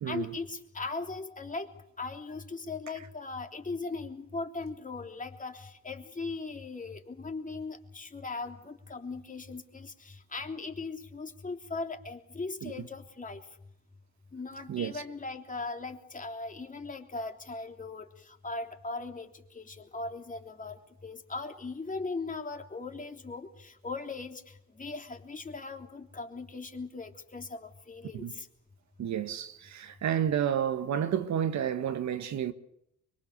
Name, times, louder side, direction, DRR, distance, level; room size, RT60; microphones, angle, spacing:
voice 1, 0.1-1.7 2.0-13.4 14.3-28.5, left 3 dB, 25° left, 3.3 m, -39 dB
voice 2, 14.7-15.0 28.1-28.3 29.0-32.5, right 9 dB, 65° right, 1.6 m, -30 dB
25.0 x 23.0 x 6.8 m
cardioid pair, 90°, 30 cm